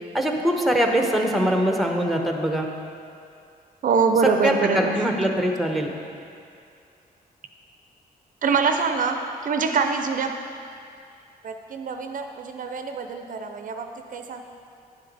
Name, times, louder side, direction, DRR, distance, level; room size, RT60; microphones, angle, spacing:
voice 1, 0.1-2.7 4.2-5.9, right 1 dB, ahead, 2 dB, 0.9 m, -22 dB
voice 2, 3.8-5.0 8.4-10.3 11.4-13.9 14.1-14.4, right 5 dB, 60° right, 6 dB, 0.6 m, -24 dB
10.0 x 7.5 x 4.0 m, 2.4 s
cardioid pair, 110°, 16 cm